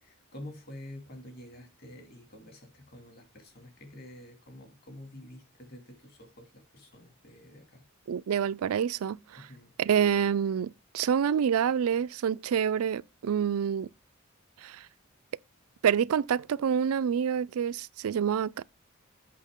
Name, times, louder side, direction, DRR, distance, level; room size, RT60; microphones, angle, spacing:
voice 1, 0.0-7.8 9.4-9.7, left 1 dB, 45° left, 2.4 m, -48 dB
voice 2, 8.1-9.5 9.8-13.9 14.6-14.8 15.8-18.6, right 8 dB, 90° right, 0.4 m, -27 dB
8.5 x 5.7 x 3.6 m
head